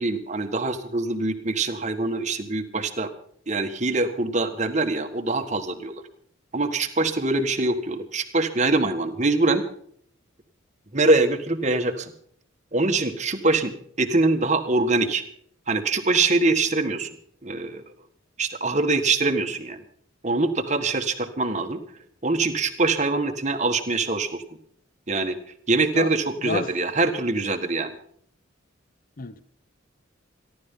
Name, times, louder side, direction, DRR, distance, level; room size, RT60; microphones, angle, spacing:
voice 1, 0.0-3.1 3.5-6.0 6.5-9.6 10.9-12.1 12.7-13.7 14.0-15.2 15.7-17.1 17.4-17.8 18.4-19.8 20.2-21.8 22.2-24.4 25.1-25.4 25.7-28.0, right 3 dB, 35° right, 6 dB, 1.6 m, -23 dB
voice 2, 26.4-26.7 29.2-29.4, left 3 dB, 45° left, 14 dB, 0.7 m, -30 dB
28.0 x 12.0 x 3.8 m, 0.63 s
head